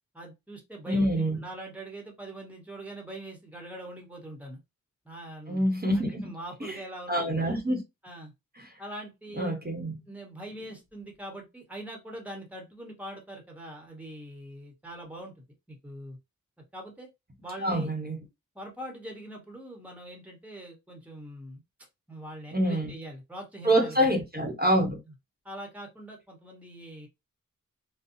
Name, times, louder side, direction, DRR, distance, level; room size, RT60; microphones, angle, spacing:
voice 1, 0.1-4.6 5.0-5.6 5.9-7.6 8.0-8.3 8.8-9.6 10.1-15.3 15.7-16.2 16.7-17.1 17.4-17.9 18.5-21.6 22.1-24.2 25.4-27.1, right 1 dB, 5° right, 1.2 m, -43 dB
voice 2, 0.9-1.5 5.5-6.3 6.6-6.8 7.1-7.8 8.6-8.7 9.3-10.0 17.6-18.2 22.5-22.9 23.6-25.0, equal, 30° right, 1.1 m, -26 dB
4.1 x 2.3 x 2.7 m
wide cardioid pair, 100°, 32 cm